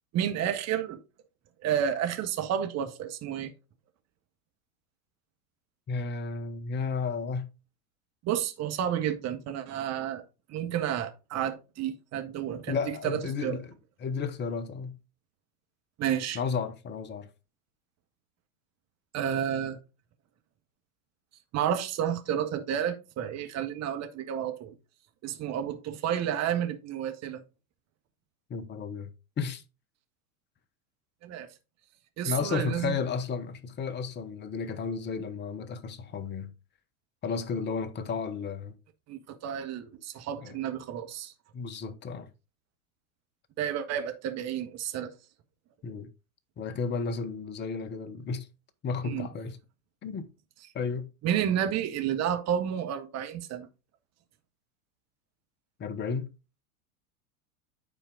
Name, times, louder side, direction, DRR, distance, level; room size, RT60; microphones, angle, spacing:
voice 1, 0.1-1.0 1.6-3.5 8.2-10.2 10.5-13.6 16.0-16.4 19.1-19.8 21.5-24.7 25.2-27.4 31.2-31.5 32.2-32.9 39.1-41.3 43.6-45.1 49.0-49.3 51.2-53.7, right 9 dB, 35° right, 1.6 m, -31 dB
voice 2, 5.9-7.5 12.7-13.7 14.0-15.0 16.3-17.3 28.5-29.6 32.2-36.5 37.2-38.8 40.4-40.6 41.5-42.3 45.8-46.1 46.6-48.5 48.8-49.6 50.0-50.3 50.7-51.1 55.8-56.3, left 5 dB, 25° left, 1.0 m, -33 dB
10.5 x 4.4 x 3.8 m
hypercardioid pair, 90°, 43 cm